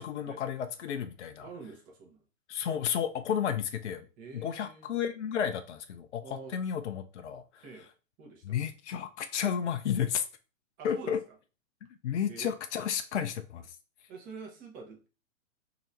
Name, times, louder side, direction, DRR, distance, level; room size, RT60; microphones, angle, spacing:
voice 1, 0.0-1.5 2.5-4.1 4.3-7.6 8.4-10.2 10.8-11.2 12.0-13.8, left 8 dB, 60° left, 0.5 m, -32 dB
voice 2, 1.4-2.2 4.2-4.9 6.2-6.6 7.6-7.9 8.2-8.6 10.8-11.1 12.3-12.5 14.1-15.1, right 4 dB, 20° right, 0.9 m, -46 dB
3.1 x 2.8 x 3.9 m
figure-of-eight pair, 110°, 40 cm